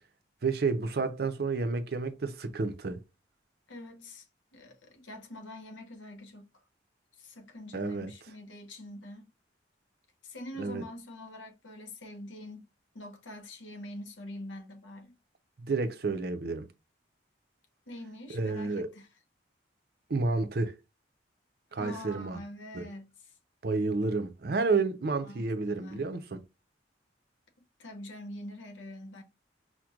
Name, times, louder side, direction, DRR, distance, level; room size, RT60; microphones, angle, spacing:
voice 1, 0.4-3.0 7.7-8.1 10.6-10.8 15.6-16.7 18.3-18.9 20.1-20.8 21.7-22.4 22.7-22.9 23.6-26.4, right 3 dB, 55° right, 0.5 m, -30 dB
voice 2, 3.7-4.3 4.5-6.5 7.1-9.3 10.2-12.7 12.9-15.1 17.9-19.1 21.8-23.1 25.2-26.1 27.8-29.2, left 1 dB, 85° left, 1.0 m, -45 dB
5.9 x 2.1 x 2.4 m
head